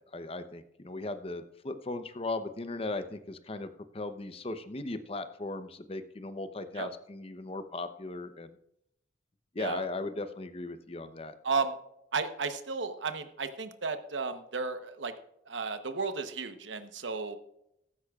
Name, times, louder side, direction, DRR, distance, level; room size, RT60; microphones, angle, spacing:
voice 1, 0.0-3.7 3.9-8.5 9.5-11.3, left 2 dB, 30° left, 10 dB, 0.7 m, -37 dB
voice 2, 11.4-11.7 12.1-15.1 15.5-17.4, right 4 dB, 80° right, 9 dB, 1.0 m, -33 dB
15.5 x 13.0 x 2.4 m, 0.79 s
head